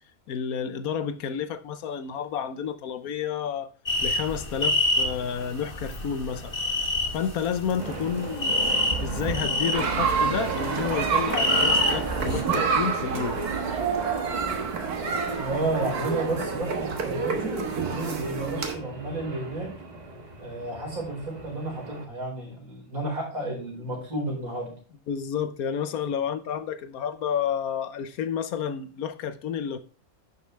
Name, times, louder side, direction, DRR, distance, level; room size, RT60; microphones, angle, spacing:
voice 1, 0.3-3.7 4.0-6.5 7.1-8.6 9.0-13.4 25.1-29.8, left 8 dB, 75° left, 1.3 m, -30 dB
sound 1, 3.9-12.4, left 2 dB, 35° left, 2.0 m, -28 dB
sound 2, 7.8-22.1, right 4 dB, 30° right, 1.3 m, -36 dB
sound 3, 9.7-18.7, right 5 dB, 85° right, 1.9 m, -28 dB
voice 2, 15.3-19.7 20.4-24.7, right 2 dB, 65° right, 4.9 m, -32 dB
11.0 x 6.8 x 3.2 m
omnidirectional pair, 1.6 m